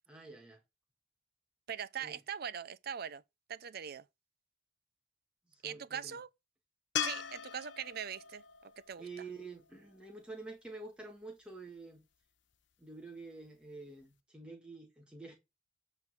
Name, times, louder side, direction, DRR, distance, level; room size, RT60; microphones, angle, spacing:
voice 1, 0.1-0.6 2.0-2.2 5.5-6.2 9.0-12.1 12.8-15.3, right 3 dB, 5° right, 1.6 m, -48 dB
voice 2, 1.7-3.2 3.5-4.0 5.6-6.3 7.0-9.0, right 8 dB, 55° right, 0.5 m, -41 dB
sound 1, 7.0-10.2 13.5-13.6, left 9 dB, 75° left, 0.8 m, -40 dB
8.9 x 4.0 x 6.3 m
head